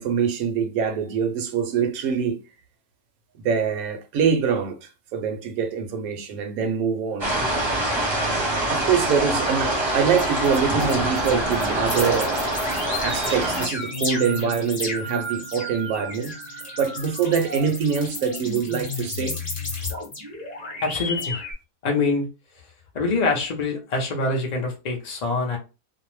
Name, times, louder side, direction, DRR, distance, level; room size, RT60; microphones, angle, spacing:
voice 1, 0.0-2.4 3.4-4.8 5.1-7.3 8.7-12.4 13.0-16.4 16.8-19.4, right 6 dB, 70° right, 1.0 m, -24 dB
sound 1, 7.2-13.7, right 1 dB, 25° right, 0.7 m, -25 dB
sound 2, 8.3-8.4 8.9-9.4 9.9-21.5, left 2 dB, 30° left, 0.9 m, -33 dB
voice 2, 20.8-21.4 21.8-22.3 22.9-25.6, left 3 dB, 60° left, 0.4 m, -24 dB
2.7 x 2.0 x 3.0 m
omnidirectional pair, 1.7 m